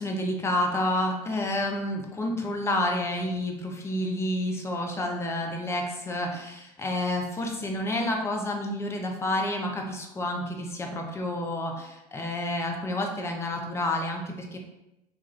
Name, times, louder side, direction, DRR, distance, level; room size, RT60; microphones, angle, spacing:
voice 1, 0.0-14.6, left 1 dB, 15° left, 2 dB, 0.4 m, -29 dB
2.3 x 2.2 x 3.0 m, 0.94 s
figure-of-eight pair, 70°, 21 cm